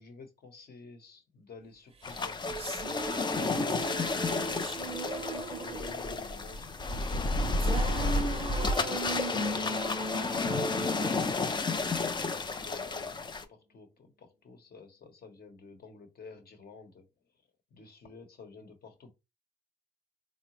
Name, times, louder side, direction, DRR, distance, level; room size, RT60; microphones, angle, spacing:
voice 1, 0.0-3.4 4.2-10.1 10.8-17.1 17.7-19.1, left 4 dB, 50° left, 1.0 m, -51 dB
sound 1, 2.0-13.5, left 3 dB, 25° left, 0.4 m, -31 dB
sound 2, 2.1-12.5, right 2 dB, 30° right, 0.6 m, -38 dB
3.8 x 2.1 x 3.0 m
cardioid pair, 90°, 20 cm